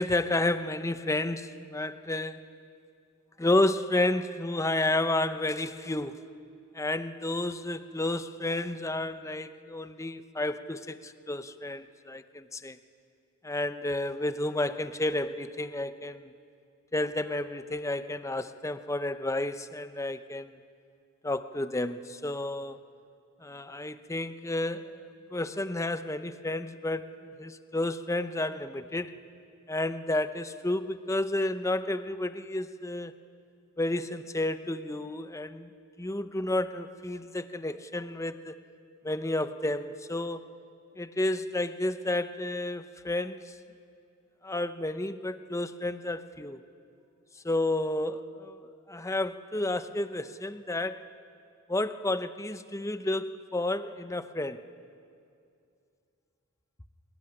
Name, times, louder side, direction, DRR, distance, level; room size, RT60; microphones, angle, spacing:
voice 1, 0.0-2.5 3.4-6.2 6.7-12.8 13.4-16.3 16.9-20.6 21.2-22.8 23.4-25.0 25.3-29.2 29.7-33.1 33.8-35.7 36.0-38.6 39.0-40.5 41.0-43.6 44.4-46.6 47.3-51.1 51.7-54.6, left 2 dB, 15° left, 12 dB, 0.7 m, -31 dB
24.5 x 21.0 x 9.9 m, 2.4 s
head